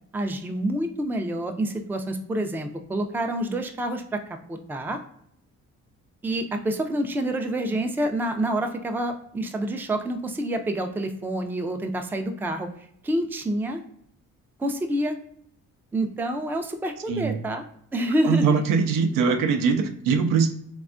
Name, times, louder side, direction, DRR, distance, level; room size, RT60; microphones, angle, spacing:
voice 1, 0.1-4.2 4.5-5.0 6.2-13.8 14.6-15.2 15.9-17.6 17.9-18.6, right 1 dB, 5° right, 5 dB, 0.3 m, -27 dB
voice 2, 18.2-20.5, right 5 dB, 85° right, 6 dB, 0.5 m, -22 dB
3.4 x 2.2 x 2.4 m, 0.69 s
cardioid pair, 75°, 32 cm